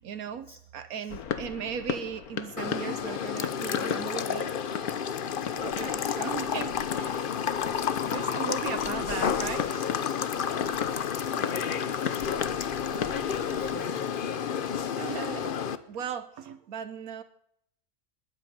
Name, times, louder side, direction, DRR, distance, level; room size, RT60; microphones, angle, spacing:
voice 1, 0.0-4.6 5.6-7.4 8.1-9.9 11.3-11.5 15.0-15.5 15.9-17.2, right 8 dB, 75° right, 11 dB, 1.3 m, -37 dB
sound 1, 1.1-13.8, left 8 dB, 85° left, 1.5 m, -38 dB
sound 2, 2.6-15.8, left 7 dB, 50° left, 0.7 m, -30 dB
voice 2, 5.3-5.7 11.3-12.0 12.3-14.1 14.5-14.8, equal, 15° left, 3 dB, 2.5 m, -48 dB
20.5 x 8.9 x 6.7 m, 0.72 s
omnidirectional pair, 1.5 m